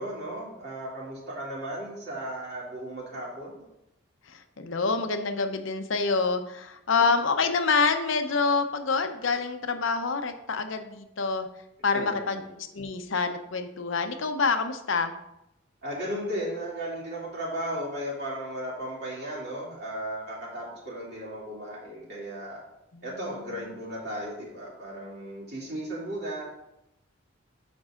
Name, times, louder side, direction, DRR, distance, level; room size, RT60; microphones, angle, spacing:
voice 1, 0.0-3.5 11.9-12.5 15.8-22.6 23.0-26.4, right 1 dB, 55° right, -5 dB, 2.4 m, -35 dB
voice 2, 4.3-11.5 11.8-12.4 12.7-15.1 22.9-23.0, left 4 dB, 75° left, 7 dB, 0.7 m, -27 dB
14.5 x 5.4 x 2.5 m, 0.86 s
head